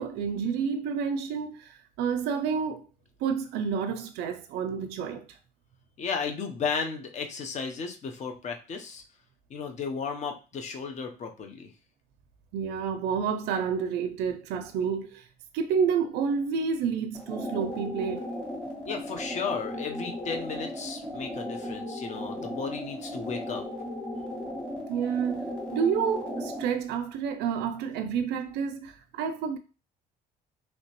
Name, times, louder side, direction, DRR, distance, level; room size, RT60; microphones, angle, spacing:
voice 1, 0.0-2.8 3.2-5.3 12.5-15.3 15.5-18.3 24.9-29.6, right 6 dB, 80° right, 0.4 m, -29 dB
voice 2, 6.0-9.0 9.5-11.7 18.8-23.6, left 5 dB, 45° left, 0.7 m, -34 dB
sound 1, 17.1-26.8, left 1 dB, 5° left, 1.3 m, -36 dB
3.1 x 2.8 x 2.9 m
cardioid pair, 110°, 17 cm